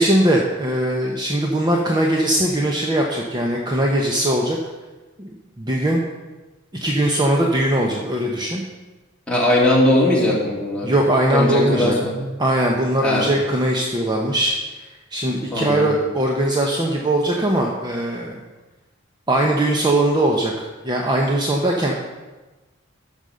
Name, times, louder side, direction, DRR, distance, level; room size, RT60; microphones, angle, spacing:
voice 1, 0.0-4.6 5.2-5.3 5.6-6.0 6.8-8.6 10.8-11.9 12.4-14.6 15.1-18.4 19.3-22.0, right 1 dB, 20° right, 0 dB, 1.0 m, -20 dB
voice 2, 9.3-10.9 11.3-12.3 13.0-13.4 15.5-16.0, left 1 dB, 5° left, -5 dB, 2.7 m, -19 dB
13.0 x 5.4 x 6.4 m, 1.2 s
head